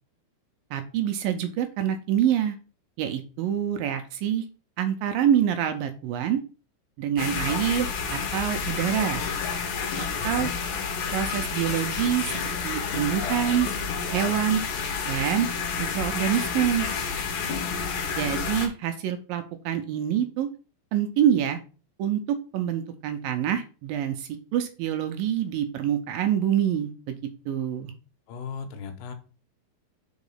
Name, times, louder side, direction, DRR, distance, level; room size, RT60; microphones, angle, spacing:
voice 1, 0.7-2.6 3.0-4.4 4.8-6.4 7.0-9.2 10.0-10.5 11.1-12.4 12.6-13.7 14.1-14.6 15.1-15.5 15.8-16.9 18.2-20.5 20.9-21.6 22.0-27.1 27.5-27.9, right 10 dB, 80° right, 7 dB, 2.1 m, -26 dB
sound 1, 7.2-18.7, left 6 dB, 65° left, 2.4 m, -30 dB
voice 2, 10.2-10.5 28.3-29.1, left 5 dB, 80° left, 6 dB, 3.0 m, -37 dB
5.2 x 4.9 x 5.4 m, 0.35 s
omnidirectional pair, 4.6 m